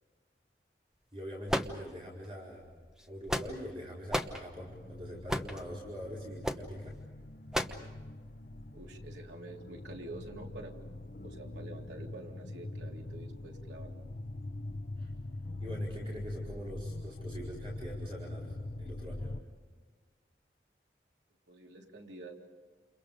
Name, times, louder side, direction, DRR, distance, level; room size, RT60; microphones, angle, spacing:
voice 1, 1.1-2.7 3.1-7.0 15.0-15.1 15.6-19.3, equal, 30° right, -4 dB, 4.9 m, -43 dB
sound 1, 1.5-2.3 3.0-3.7 4.1-4.4 5.3-5.6 6.4-6.7 7.5-7.9, equal, 5° right, 1.0 m, -33 dB
sound 2, 4.6-19.4, left 2 dB, 60° left, 0.9 m, -43 dB
voice 2, 8.7-10.7 11.2-13.9 21.5-22.3, right 2 dB, 90° right, 0 dB, 3.3 m, -47 dB
30.0 x 29.0 x 5.2 m, 1.4 s
head